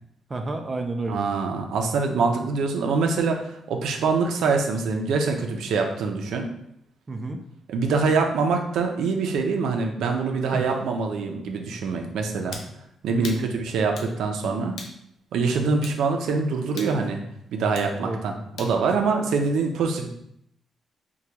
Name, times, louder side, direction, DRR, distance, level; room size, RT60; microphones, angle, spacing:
voice 1, 0.3-1.3 7.1-7.4 10.5-10.7 13.2-13.5 15.5-15.8 18.0-18.2, right 2 dB, 25° right, 4 dB, 0.3 m, -31 dB
voice 2, 1.1-6.5 7.7-12.6 13.0-14.8 15.3-17.2 17.5-20.1, right 4 dB, 90° right, 3 dB, 0.5 m, -24 dB
sound 1, 12.5-12.7 13.2-13.4 14.0-14.1 14.8-15.0 15.8-16.0 16.8-17.0 17.7-17.9 18.6-18.8, left 3 dB, 65° left, 0.5 m, -38 dB
4.7 x 2.2 x 2.8 m, 0.73 s
cardioid pair, 155°, 0 cm